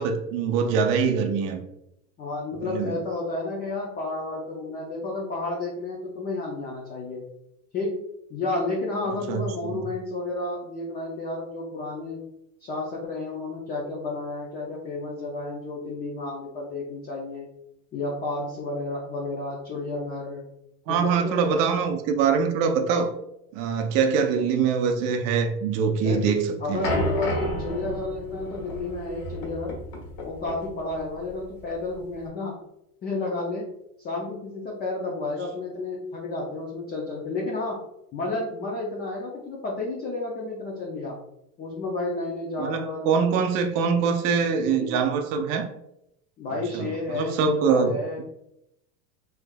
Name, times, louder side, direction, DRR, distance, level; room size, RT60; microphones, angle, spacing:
voice 1, 0.0-1.6 2.6-3.0 9.3-9.9 20.9-23.1 23.5-26.9 42.6-45.7 46.7-48.2, right 6 dB, 45° right, 5 dB, 0.6 m, -24 dB
voice 2, 2.2-7.2 7.7-8.0 8.3-12.2 12.6-17.5 17.9-20.4 20.9-21.5 26.0-26.2 26.6-29.8 30.2-32.6 33.0-33.7 34.0-37.8 38.1-41.2 41.6-43.1 43.8-44.9 46.4-48.2, left 2 dB, 20° left, -3 dB, 0.4 m, -31 dB
sound 1, 26.8-32.2, left 1 dB, 45° left, 1.5 m, -32 dB
3.3 x 3.2 x 2.2 m, 0.82 s
supercardioid pair, 125°, 49 cm